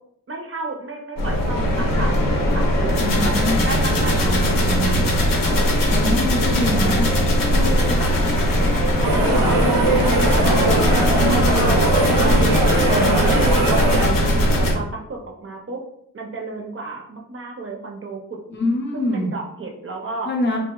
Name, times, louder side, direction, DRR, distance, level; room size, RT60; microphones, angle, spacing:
voice 1, 0.3-3.4 3.7-5.0 5.5-5.7 7.5-8.1 8.6-12.4 12.8-15.8 16.1-18.4 18.9-20.3, right 3 dB, 40° right, 1 dB, 0.4 m, -32 dB
sound 1, 1.2-14.7, equal, 90° left, 0.6 m, -19 dB
voice 2, 3.0-3.6 4.2-5.0 5.9-7.1 12.9-13.2 18.5-19.3 20.3-20.6, left 1 dB, 35° left, 1 dB, 0.5 m, -24 dB
sound 2, 9.0-14.1, right 2 dB, 90° right, 0.6 m, -20 dB
2.7 x 2.4 x 2.2 m, 0.75 s
wide cardioid pair, 140°, 33 cm